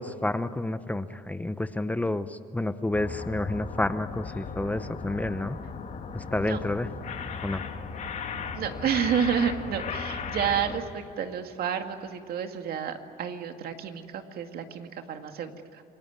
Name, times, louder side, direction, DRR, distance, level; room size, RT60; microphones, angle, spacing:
voice 1, 0.0-5.6 6.1-6.9 7.4-7.6, left 2 dB, 10° left, 12 dB, 0.8 m, -30 dB
sound 1, 2.9-10.8, left 5 dB, 50° left, 2.7 m, -36 dB
voice 2, 8.5-15.8, right 8 dB, 65° right, 6 dB, 2.2 m, -30 dB
28.0 x 19.0 x 9.6 m, 2.7 s
cardioid pair, 110°, 17 cm